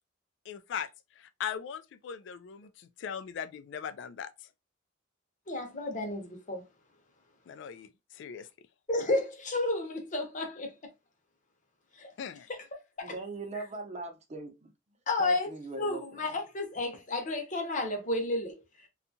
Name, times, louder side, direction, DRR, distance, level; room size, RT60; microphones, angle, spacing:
voice 1, 0.5-0.9 1.2-4.3 7.5-8.7 12.2-12.5, left 8 dB, 65° left, 0.3 m, -39 dB
voice 2, 5.5-6.6 8.9-10.7 11.9-12.1 13.0-13.1 13.5-13.6 15.1-18.9, left 2 dB, 40° left, 0.7 m, -32 dB
voice 3, 13.0-14.7 15.2-16.0, right 3 dB, 35° right, 0.6 m, -40 dB
2.7 x 2.3 x 2.6 m
head